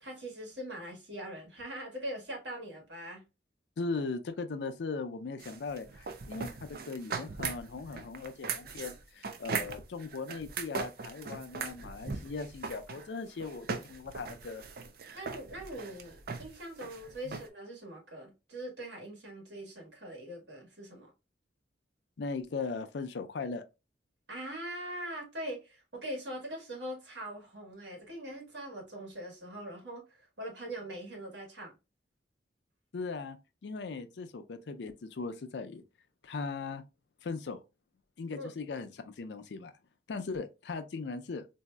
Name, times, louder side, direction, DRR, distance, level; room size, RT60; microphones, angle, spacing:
voice 1, 0.0-3.2 15.1-21.1 24.3-31.7 38.3-38.5, right 1 dB, 75° right, 1.6 m, -42 dB
voice 2, 3.8-14.7 17.2-17.4 22.2-23.6 32.9-33.4 33.6-35.8 36.2-36.8 37.2-37.6 38.2-39.7 40.1-41.5, left 4 dB, 70° left, 0.4 m, -38 dB
sound 1, 5.4-17.5, right 5 dB, 55° right, 0.4 m, -39 dB
3.9 x 2.7 x 2.2 m
head